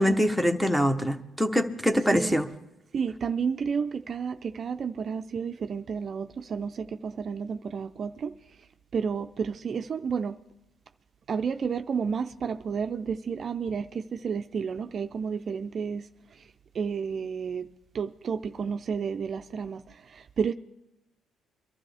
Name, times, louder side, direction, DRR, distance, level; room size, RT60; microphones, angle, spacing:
voice 1, 0.0-2.4, equal, ahead, 1.0 m, -24 dB
voice 2, 2.9-8.3 8.9-10.4 11.3-16.1 16.7-17.7 17.9-19.8 20.1-20.5, right 6 dB, 45° right, 0.5 m, -31 dB
23.0 x 12.5 x 3.5 m
cardioid pair, 125°, 0 cm